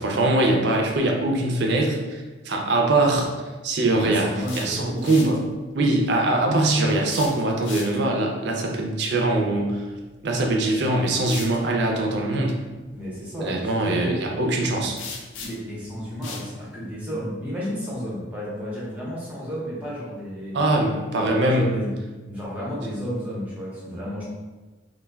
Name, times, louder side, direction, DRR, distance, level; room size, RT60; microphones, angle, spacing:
voice 1, 0.0-3.3 3.6-5.5 5.7-9.8 10.2-12.6 13.4-15.0 20.5-21.8, right 2 dB, 60° right, 1 dB, 0.4 m, -22 dB
voice 2, 4.0-5.1 12.9-14.2 15.4-20.6 21.2-21.9 22.3-24.2, equal, 10° right, -7 dB, 0.6 m, -32 dB
sound 1, 4.4-5.4 7.0-8.2 10.3-10.4 11.2-11.6 15.0-15.8 16.2-16.5, left 5 dB, 75° left, 0.4 m, -38 dB
2.2 x 2.1 x 3.3 m, 1.2 s
head